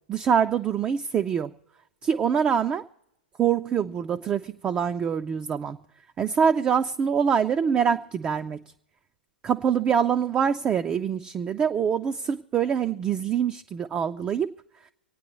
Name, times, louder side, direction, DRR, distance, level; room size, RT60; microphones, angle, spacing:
voice 1, 0.1-1.5 2.0-2.8 3.4-5.8 6.2-8.6 9.4-14.5, right 7 dB, 20° right, 7 dB, 0.3 m, -24 dB
26.0 x 9.1 x 3.0 m, 0.85 s
figure-of-eight pair, 105°, 5 cm